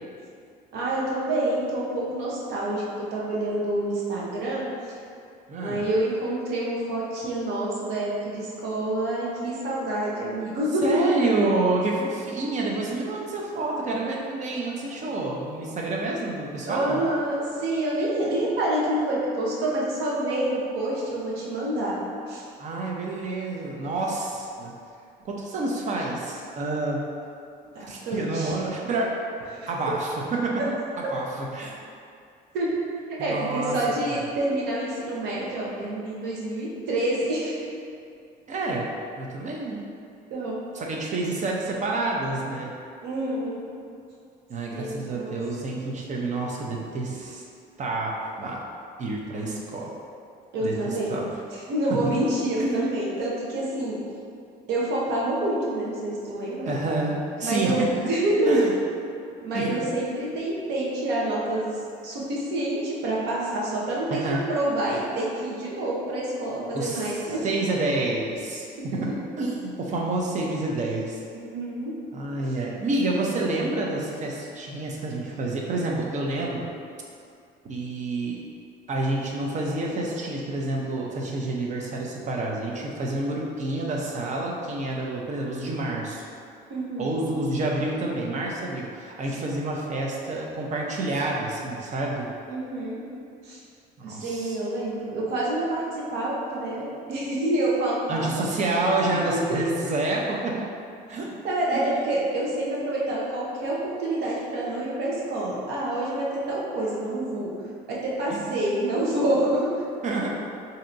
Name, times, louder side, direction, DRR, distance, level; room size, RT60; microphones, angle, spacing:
voice 1, 0.7-2.8 3.1-4.7 5.6-11.0 15.0-15.1 16.7-22.0 22.3-22.4 27.7-28.5 29.5-29.7 32.5-32.8 33.2-37.6 40.3-40.6 43.0-43.7 44.7-45.4 49.4-49.6 50.5-51.2 51.7-54.0 54.7-56.7 57.4-57.8 58.1-58.6 59.4-61.8 62.0-67.4 68.8-69.2 71.3-71.9 86.7-87.2 92.5-93.0 93.4-93.6 94.0-95.9 96.1-98.4 99.3-99.6 101.4-107.5 107.9-109.7, right 1 dB, 80° right, -5 dB, 0.9 m, -27 dB
voice 2, 5.5-5.8 10.8-17.0 22.6-24.7 25.2-27.0 27.9-29.1 29.7-30.5 31.0-31.7 33.2-33.7 34.1-34.2 38.5-39.8 40.7-42.7 44.5-47.4 47.8-48.6 49.0-50.0 50.6-51.4 51.9-52.0 52.6-52.9 56.7-57.9 58.5-58.7 59.5-59.8 64.1-64.4 66.7-69.1 69.4-71.2 72.1-76.7 77.6-78.4 78.9-86.3 87.0-92.3 94.0-94.6 98.1-100.5 101.1-101.3 101.7-102.1 108.3-108.5 110.0-110.3, right 2 dB, 45° right, -2 dB, 0.6 m, -28 dB
4.3 x 2.7 x 2.6 m, 2.4 s
cardioid pair, 110°, 17 cm